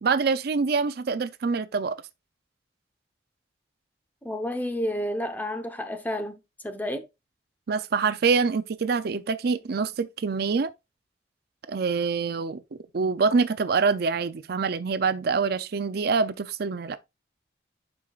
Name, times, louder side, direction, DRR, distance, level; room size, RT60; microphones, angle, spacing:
voice 1, 0.0-2.0 7.7-10.7 11.7-12.6 12.9-17.0, right 5 dB, 60° right, 0.5 m, -25 dB
voice 2, 4.2-7.1, equal, 10° left, 0.9 m, -31 dB
9.7 x 5.2 x 2.4 m
head